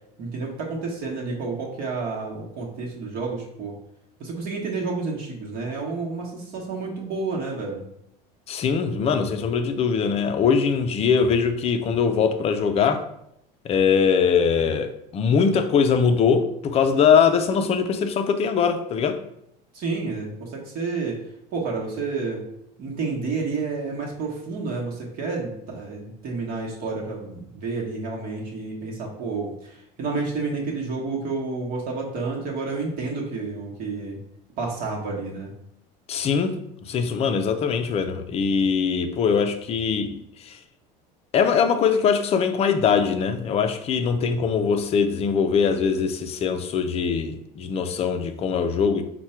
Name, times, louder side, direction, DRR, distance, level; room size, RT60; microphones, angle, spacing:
voice 1, 0.2-3.8 4.2-7.8 19.7-21.2 21.5-22.4 22.8-34.2 34.6-35.5, right 4 dB, 55° right, 1.0 m, -30 dB
voice 2, 8.5-13.1 13.6-19.2 36.1-36.6 36.9-40.2 40.5-40.6 41.3-49.0, left 6 dB, 35° left, 0.4 m, -22 dB
4.5 x 2.2 x 4.3 m
cardioid pair, 135°, 19 cm